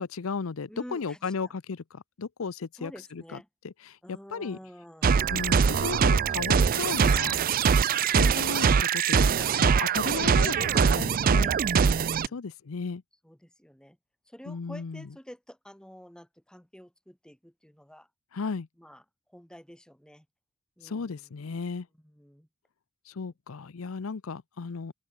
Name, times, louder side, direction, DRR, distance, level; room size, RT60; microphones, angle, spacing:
voice 1, 0.0-3.4 3.6-4.6 5.3-7.4 8.1-9.3 9.6-11.5 12.3-13.0 14.5-15.1 18.3-18.7 20.8-21.9 23.1-24.9, left 5 dB, 75° left, 0.6 m, -35 dB
voice 2, 0.7-1.3 2.7-3.5 4.0-5.3 10.3-12.4 13.2-14.0 14.3-18.1 18.8-19.0 19.3-20.3 20.8-21.3 22.0-22.5, equal, 5° left, 2.7 m, -48 dB
sound 1, 5.0-12.3, right 6 dB, 45° right, 0.4 m, -23 dB
open air
head